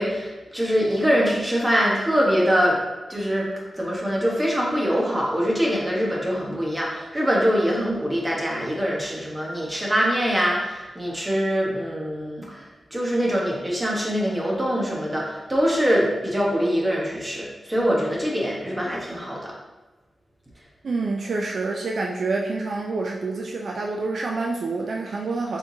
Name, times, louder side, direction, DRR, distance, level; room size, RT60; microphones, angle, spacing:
voice 1, 0.0-2.8 3.1-3.5 3.8-19.5, equal, 15° right, -4 dB, 1.2 m, -23 dB
voice 2, 20.8-25.6, right 3 dB, 70° right, 0 dB, 0.4 m, -27 dB
4.4 x 3.5 x 2.7 m, 1.2 s
cardioid pair, 70°, 0 cm